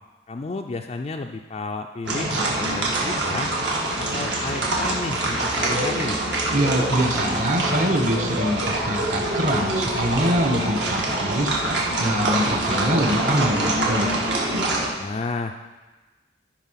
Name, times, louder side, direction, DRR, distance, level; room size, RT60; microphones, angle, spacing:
voice 1, 0.3-3.5 3.9-6.2 15.0-15.6, left 3 dB, 35° left, 3 dB, 0.4 m, -32 dB
sound 1, 2.0-14.9, right 1 dB, 70° right, 1.9 m, -25 dB
voice 2, 6.5-14.1, equal, 45° right, 3 dB, 1.1 m, -24 dB
13.0 x 4.9 x 5.7 m, 1.2 s
head